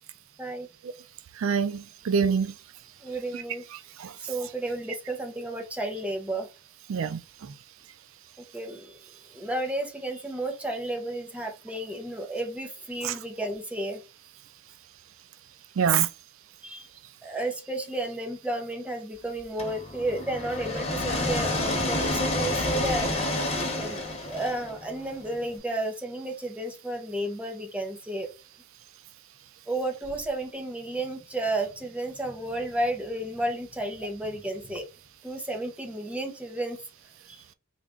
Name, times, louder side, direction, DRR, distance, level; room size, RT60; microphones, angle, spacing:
voice 1, 1.4-2.5 3.3-3.4 4.0-4.1 6.9-7.2 13.0-13.2 15.8-16.1, right 7 dB, 85° right, 0.4 m, -25 dB
voice 2, 3.0-3.6 4.2-6.5 8.5-9.0 9.3-14.0 16.6-16.9 17.2-23.2 23.8-28.3 29.7-34.9 35.2-36.8 37.3-37.4, right 1 dB, 5° right, 0.7 m, -32 dB
sound 1, 19.6-25.5, left 1 dB, 30° left, 1.1 m, -29 dB
3.4 x 2.4 x 3.7 m
head